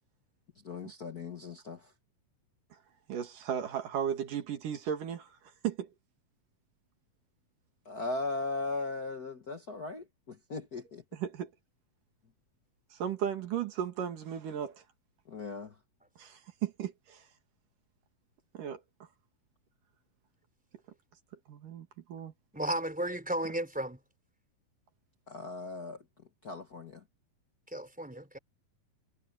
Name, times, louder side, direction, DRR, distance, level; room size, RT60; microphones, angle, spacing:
voice 1, 0.6-1.9 7.8-11.0 15.3-15.8 25.3-26.0 26.4-27.0, left 3 dB, 85° left, 0.8 m, -38 dB
voice 2, 3.1-5.3 5.6-5.9 11.1-11.5 12.9-14.8 16.2-17.2 18.5-18.8 21.5-22.3, right 9 dB, 65° right, 3.4 m, -35 dB
voice 3, 22.5-24.0 27.7-28.4, right 1 dB, ahead, 3.5 m, -34 dB
omnidirectional pair, 4.2 m